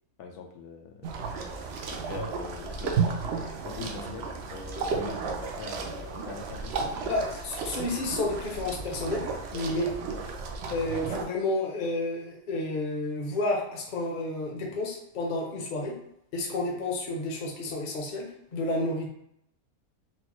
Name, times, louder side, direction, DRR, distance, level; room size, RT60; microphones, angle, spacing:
voice 1, 0.2-3.2 3.6-7.0 9.8-9.9, left 5 dB, 85° left, 3 dB, 1.2 m, -42 dB
sound 1, 1.0-11.2, right 5 dB, 70° right, 0.6 m, -33 dB
voice 2, 7.0-9.2 9.5-9.9 10.7-16.0 16.3-19.1, left 2 dB, 45° left, 0 dB, 0.6 m, -31 dB
4.4 x 2.0 x 3.0 m, 0.75 s
omnidirectional pair, 1.6 m